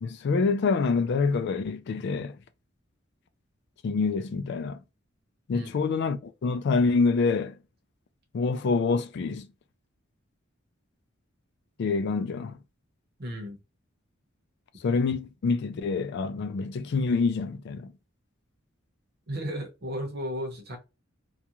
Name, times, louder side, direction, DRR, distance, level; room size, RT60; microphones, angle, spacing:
voice 1, 0.0-2.4 3.8-4.8 5.5-7.6 8.3-9.5 11.8-12.6 14.8-17.9, left 4 dB, 60° left, 0.3 m, -26 dB
voice 2, 13.2-13.6 19.3-20.8, equal, 55° right, 0.8 m, -34 dB
2.4 x 2.2 x 2.9 m
head